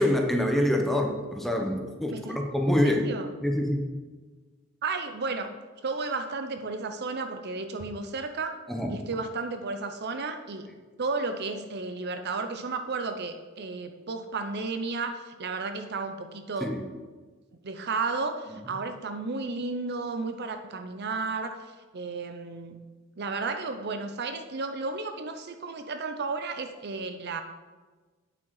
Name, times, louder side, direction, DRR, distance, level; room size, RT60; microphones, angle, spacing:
voice 1, 0.0-3.0 3.4-3.8 8.7-8.9 16.6-16.8, left 1 dB, ahead, 2 dB, 1.0 m, -25 dB
voice 2, 2.1-2.4 2.7-3.3 4.8-5.5 5.8-8.6 8.9-10.7 11.0-16.7 17.6-22.8 23.2-27.4, right 3 dB, 50° right, 7 dB, 0.7 m, -33 dB
8.9 x 7.5 x 4.8 m, 1.3 s
head